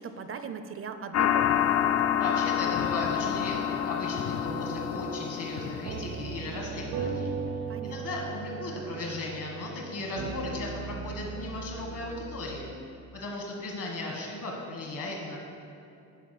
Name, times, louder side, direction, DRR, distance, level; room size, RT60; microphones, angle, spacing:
voice 1, 0.0-1.7 7.7-8.0, right 5 dB, 40° right, 9 dB, 0.5 m, -39 dB
sound 1, 1.1-6.4, left 10 dB, 50° left, 0.4 m, -28 dB
voice 2, 2.0-7.3 7.8-12.7 13.1-15.4, left 2 dB, 65° left, -1 dB, 1.6 m, -36 dB
sound 2, 4.4-12.7, right 5 dB, 80° right, 0.8 m, -38 dB
10.0 x 4.9 x 5.9 m, 2.6 s
cardioid pair, 135°, 34 cm